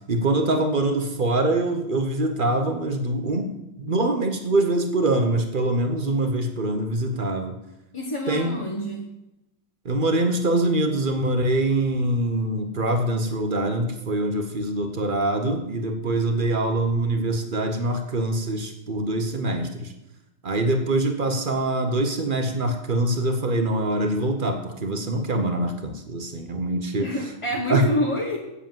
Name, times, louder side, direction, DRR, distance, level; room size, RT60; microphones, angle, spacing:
voice 1, 0.1-7.6 8.3-8.6 9.8-19.9 20.4-27.1 27.7-27.9, right 2 dB, 45° right, 5 dB, 0.6 m, -24 dB
voice 2, 7.9-9.1 27.0-28.4, equal, 25° left, -1 dB, 0.7 m, -27 dB
8.2 x 7.6 x 7.3 m, 0.96 s
omnidirectional pair, 2.2 m